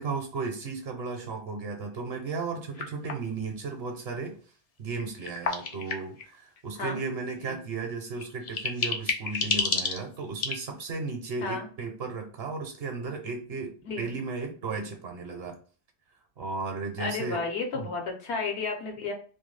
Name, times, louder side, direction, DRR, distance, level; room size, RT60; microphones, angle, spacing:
voice 1, 0.0-4.3 4.8-15.6 16.4-17.4 17.7-17.9, right 4 dB, 70° right, 2 dB, 0.9 m, -35 dB
sound 1, 2.7-3.3 5.0-6.3 7.7-7.9 8.2-10.5, left 4 dB, 55° left, 0.4 m, -30 dB
voice 2, 17.0-19.1, left 4 dB, 75° left, 2 dB, 1.0 m, -32 dB
2.5 x 2.2 x 3.2 m, 0.40 s
omnidirectional pair, 1.1 m